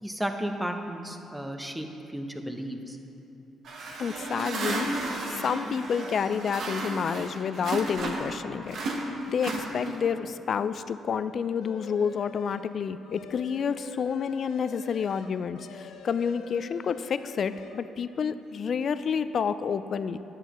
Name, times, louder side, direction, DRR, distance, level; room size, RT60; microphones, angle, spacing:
voice 1, 0.0-3.0, equal, 5° right, 4 dB, 0.8 m, -34 dB
sound 1, 3.6-8.4 8.7-10.2, right 2 dB, 65° right, 1.1 m, -33 dB
voice 2, 4.0-4.9 5.3-8.8 9.3-20.2, left 6 dB, 55° left, 13 dB, 0.3 m, -29 dB
sound 2, 11.6-12.7 13.0-17.8, left 4 dB, 85° left, 0.7 m, -45 dB
11.0 x 8.9 x 3.0 m, 2.9 s
cardioid pair, 90°, 0 cm